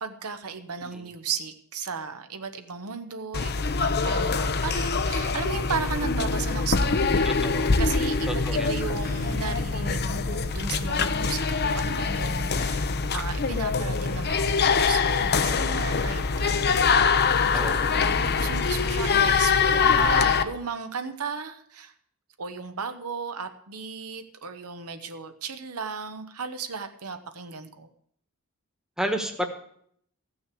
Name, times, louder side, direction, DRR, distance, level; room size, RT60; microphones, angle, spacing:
voice 1, 0.0-7.3 7.8-12.8 13.1-16.8 17.5-21.9 22.4-27.9, right 5 dB, 80° right, 8 dB, 1.1 m, -35 dB
sound 1, 3.3-20.4, left 5 dB, 45° left, 0.7 m, -24 dB
voice 2, 7.2-7.7 8.3-8.7 17.5-18.1 29.0-29.5, right 1 dB, 5° right, 5 dB, 1.3 m, -31 dB
14.0 x 6.3 x 8.4 m, 0.67 s
head